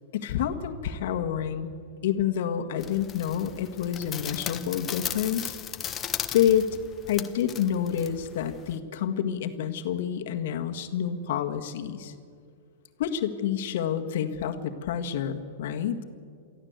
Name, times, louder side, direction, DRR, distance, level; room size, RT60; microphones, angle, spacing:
voice 1, 0.1-1.7 2.0-5.6 6.3-6.7 7.1-12.1 13.0-16.0, left 9 dB, 65° left, 6 dB, 1.7 m, -28 dB
sound 1, 2.8-8.8, left 9 dB, 25° left, 1.2 m, -37 dB
24.0 x 14.5 x 8.2 m, 2.3 s
hypercardioid pair, 125°, 0 cm